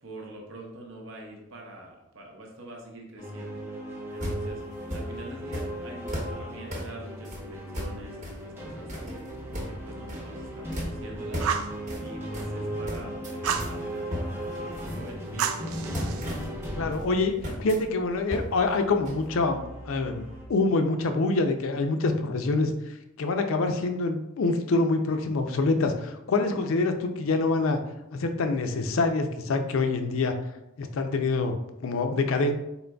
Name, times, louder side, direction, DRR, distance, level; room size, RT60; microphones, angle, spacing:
voice 1, 0.0-3.7 4.1-4.6 4.9-9.2 9.6-15.7, right 1 dB, 65° right, 1 dB, 0.7 m, -45 dB
sound 1, 3.2-20.5, right 1 dB, 10° right, 0.7 m, -37 dB
sound 2, 4.2-5.1 5.5-5.7 6.1-6.4 6.7-6.9 7.2-7.4 7.7-8.4 8.9-9.8 10.1-10.4 10.7-10.9 11.3-11.6 11.9-12.0 12.3-12.5 12.9-13.7 14.1-15.3 15.7-17.1 17.4-17.8 18.3-18.5 18.8-18.9 19.0-19.2, equal, 35° right, 0.9 m, -35 dB
Fire, 11.4-11.8 13.4-13.7 15.4-16.3, right 7 dB, 85° right, 0.4 m, -30 dB
voice 2, 16.8-22.7 23.2-27.8 28.1-30.3 30.8-32.5, left 3 dB, 70° left, 6 dB, 0.4 m, -26 dB
4.1 x 3.8 x 2.2 m, 0.87 s
head